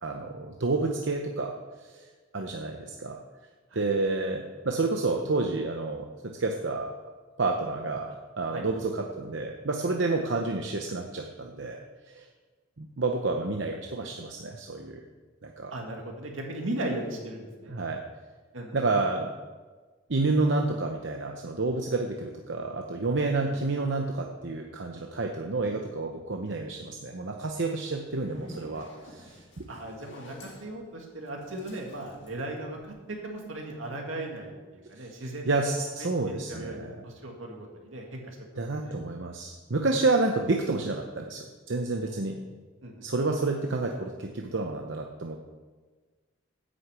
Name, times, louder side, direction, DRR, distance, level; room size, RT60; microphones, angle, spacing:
voice 1, 0.0-3.2 3.7-7.1 7.4-12.3 12.8-15.0 15.4-15.7 17.7-18.0 18.7-19.3 20.1-29.6 35.0-36.9 38.6-42.4 43.0-45.4, right 3 dB, 70° right, 3 dB, 0.8 m, -30 dB
voice 2, 15.7-17.8 18.5-18.8 23.5-23.6 29.7-35.5 35.8-36.1 36.5-38.4 38.8-39.0 42.1-42.3 42.8-43.1, right 1 dB, 85° right, 1 dB, 2.3 m, -37 dB
Zipper (clothing), 28.0-33.2, equal, 70° left, 2.2 m, -50 dB
9.5 x 6.6 x 8.2 m, 1.4 s
head